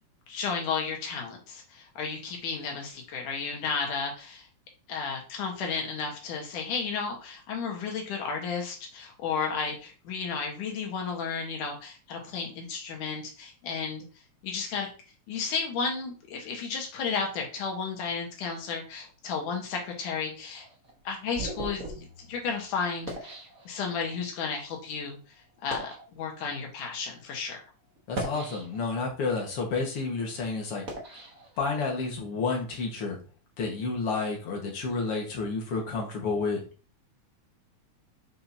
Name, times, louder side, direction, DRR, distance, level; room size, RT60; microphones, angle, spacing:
voice 1, 0.3-4.5 4.9-14.1 14.4-14.9 15.3-20.7 21.0-21.8 22.3-23.3 23.7-25.2 25.6-27.6, left 5 dB, 85° left, 1 dB, 3.0 m, -33 dB
sound 1, 20.5-24.2 24.9-25.0 25.5-26.1 26.9-27.0 28.0-29.1 29.6-32.1, right 2 dB, 35° right, 1.5 m, -40 dB
voice 2, 28.1-30.8 31.1-31.2 31.6-33.2 33.6-36.6, left 4 dB, 55° left, 0 dB, 2.3 m, -30 dB
7.6 x 5.6 x 2.8 m, 0.36 s
omnidirectional pair, 3.5 m